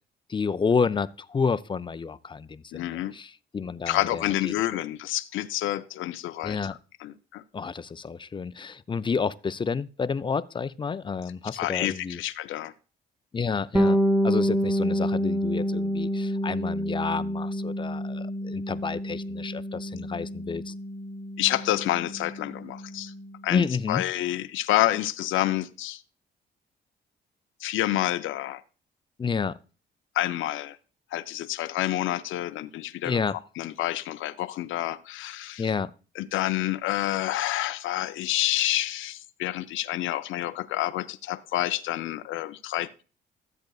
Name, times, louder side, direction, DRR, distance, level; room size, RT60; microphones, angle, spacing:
voice 1, 0.3-4.5 6.4-6.8 7.5-12.2 13.3-14.0 14.2-20.7 23.5-24.0 29.2-29.6 33.0-33.4 35.6-35.9, left 5 dB, 25° left, 0.5 m, -30 dB
voice 2, 2.7-3.1 3.9-6.6 7.0-7.4 11.5-12.7 21.4-23.1 23.4-26.0 27.6-28.6 30.1-30.8 31.1-33.2 33.6-35.7 36.2-42.9, left 14 dB, 80° left, 0.6 m, -28 dB
Bass guitar, 13.7-23.4, equal, 5° right, 0.9 m, -28 dB
13.5 x 7.9 x 2.3 m
cardioid pair, 90°, 20 cm